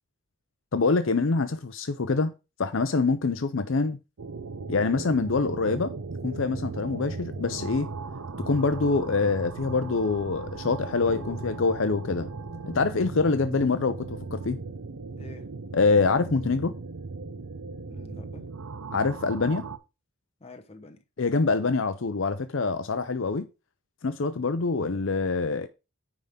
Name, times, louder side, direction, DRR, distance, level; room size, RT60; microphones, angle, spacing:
voice 1, 0.7-2.3 2.6-4.0 4.7-5.9 6.2-7.9 8.4-12.3 12.7-14.6 15.7-16.7 18.9-19.6 21.2-23.5 24.0-25.7, left 4 dB, 60° left, 0.6 m, -25 dB
sound 1, 4.2-19.8, right 4 dB, 85° right, 0.7 m, -37 dB
voice 2, 10.9-11.9 15.2-15.5 17.9-18.4 20.4-21.0, left 1 dB, 30° left, 1.0 m, -46 dB
9.7 x 3.7 x 5.1 m
head